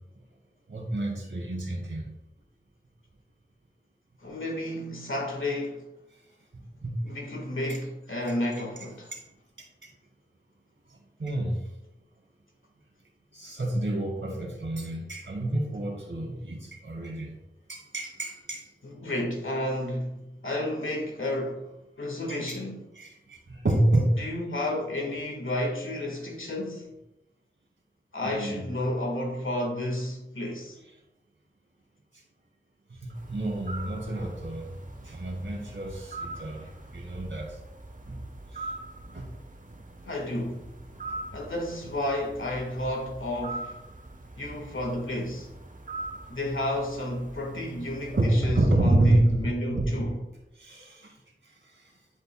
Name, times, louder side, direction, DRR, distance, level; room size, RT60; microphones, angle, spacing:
voice 1, 0.7-2.1 6.8-7.0 9.1-9.2 11.2-11.6 13.3-17.3 17.7-18.6 22.3-22.4 23.0-24.2 28.2-28.7 33.0-34.7 35.0-36.6 36.9-37.6 38.1-38.2 38.5-38.6 39.1-39.3 41.1-41.2 48.1-50.1 50.6-51.1, right 1 dB, 75° right, 2.1 m, -28 dB
voice 2, 4.2-5.8 7.0-9.1 17.0-17.1 18.8-21.7 22.0-22.8 24.2-26.9 28.1-30.8 36.6-36.7 40.0-40.8 41.3-43.8 44.4-45.5 46.3-50.2, left 1 dB, 85° left, 1.5 m, -31 dB
sound 1, 33.1-48.3, right 2 dB, 40° right, 0.9 m, -42 dB
11.0 x 5.3 x 2.2 m
wide cardioid pair, 45°, 20 cm